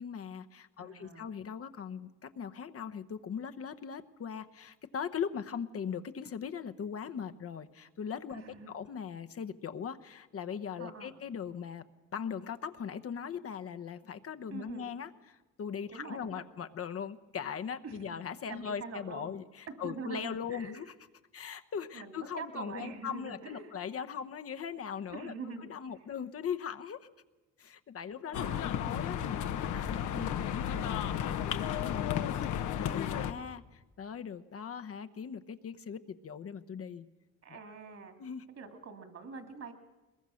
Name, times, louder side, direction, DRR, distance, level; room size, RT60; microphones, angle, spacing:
voice 1, 0.0-11.8 12.1-20.9 21.3-25.3 25.6-27.1 27.6-37.1 37.5-37.6 38.2-38.5, left 7 dB, 50° left, 8 dB, 0.9 m, -40 dB
voice 2, 0.8-1.3 8.3-8.8 10.8-11.1 14.5-14.9 15.9-16.5 17.8-18.2 18.5-19.3 19.7-20.9 21.9-23.7 25.1-25.7 26.0-26.1 28.3-28.7 30.1-30.4 37.4-38.1 38.6-39.7, right 4 dB, 55° right, 7 dB, 2.6 m, -44 dB
sound 1, 28.3-33.3, left 9 dB, 80° left, 1.1 m, -33 dB
21.5 x 21.0 x 6.4 m, 1.1 s
cardioid pair, 90°, 30 cm